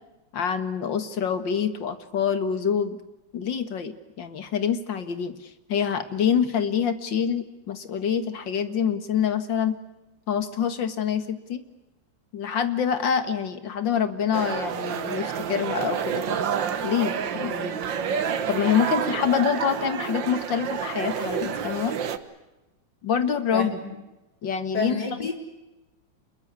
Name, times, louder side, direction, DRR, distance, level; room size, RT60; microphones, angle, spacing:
voice 1, 0.3-3.0 3.3-9.8 10.3-11.6 12.3-16.4 16.8-17.8 18.5-22.0 23.0-23.8 24.4-25.0, left 7 dB, 80° left, 11 dB, 2.4 m, -26 dB
sound 1, 14.3-22.2, right 7 dB, 80° right, 2.0 m, -29 dB
voice 2, 24.7-25.3, left 3 dB, 65° left, 4 dB, 4.9 m, -28 dB
27.0 x 22.0 x 8.2 m, 1.0 s
omnidirectional pair, 2.0 m